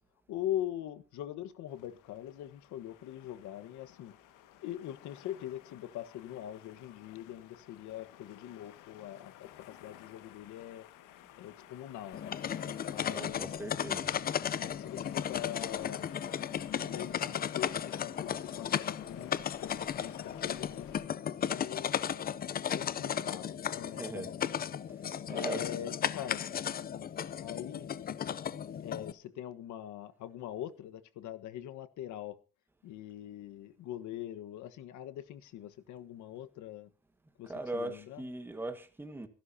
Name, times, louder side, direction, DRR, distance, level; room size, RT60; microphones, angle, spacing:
voice 1, 0.3-4.1 4.6-10.8 11.4-12.4 12.9-13.6 13.9-14.1 14.5-16.1 16.7-21.9 22.7-24.3 25.3-26.4 27.4-27.9 28.8-32.4 32.8-36.9 37.4-38.2, left 11 dB, 65° left, 1.4 m, -42 dB
sound 1, 1.7-21.0, left 12 dB, 90° left, 1.8 m, -54 dB
sound 2, 12.1-29.1, left 9 dB, 30° left, 0.6 m, -35 dB
voice 2, 13.1-14.1 23.8-24.3 25.3-25.6 37.4-39.3, right 2 dB, 5° right, 1.6 m, -40 dB
26.5 x 12.0 x 2.8 m
cardioid pair, 160°, 31 cm